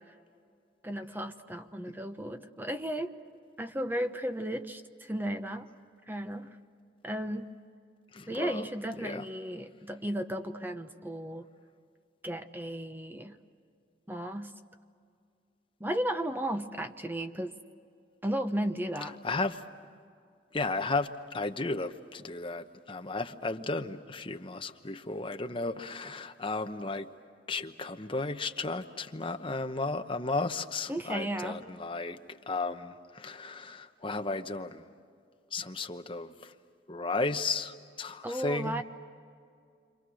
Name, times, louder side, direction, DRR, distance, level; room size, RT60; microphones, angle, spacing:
voice 1, 0.8-3.1 3.6-5.7 6.1-6.6 7.0-7.5 8.3-11.5 12.2-13.4 14.1-14.6 15.8-17.5 18.2-19.2 30.9-31.6 38.2-38.8, right 1 dB, 10° right, 1.0 m, -34 dB
voice 2, 8.1-8.7 9.0-9.3 19.0-19.6 20.5-27.1 27.5-32.2 32.5-34.9 35.5-36.5 36.9-38.8, left 3 dB, 30° left, 1.0 m, -34 dB
29.0 x 26.5 x 6.4 m
head